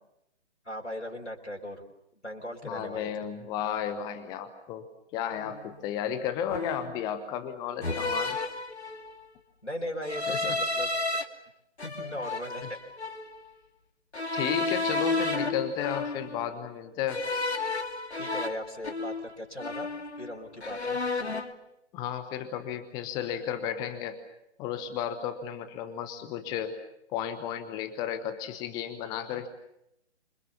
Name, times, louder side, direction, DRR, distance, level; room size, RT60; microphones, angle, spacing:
voice 1, 0.6-1.8 2.2-3.1 9.6-10.9 11.8-12.8 18.2-19.9 20.2-21.0, equal, 85° left, 1 dB, 4.8 m, -38 dB
voice 2, 2.6-4.8 5.1-8.4 10.3-10.6 11.1-11.2 14.3-17.2 21.9-24.2 24.6-26.8 27.1-29.5, left 9 dB, 10° left, 10 dB, 1.0 m, -33 dB
sound 1, 5.4-5.6 6.5-7.0 7.8-9.2 10.0-11.2 11.8-13.3 14.1-16.5 17.1-19.3 19.6-20.3 20.6-21.5, left 3 dB, 70° left, 2.8 m, -32 dB
27.5 x 25.5 x 7.0 m, 0.82 s
figure-of-eight pair, 135°, 35 cm